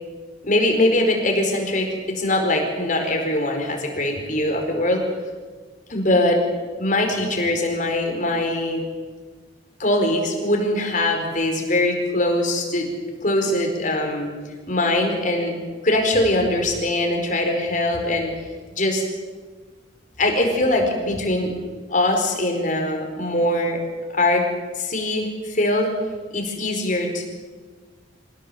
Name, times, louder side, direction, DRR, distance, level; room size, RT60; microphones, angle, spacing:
voice 1, 0.4-5.0 5.9-6.4 6.8-8.8 9.8-12.9 13.2-14.3 14.7-15.6 15.8-18.3 18.7-19.0 20.2-21.5 21.9-23.8 24.1-24.4 24.7-26.0 26.3-27.2, left 1 dB, 40° left, 3 dB, 4.7 m, -22 dB
27.5 x 16.5 x 7.9 m, 1.4 s
head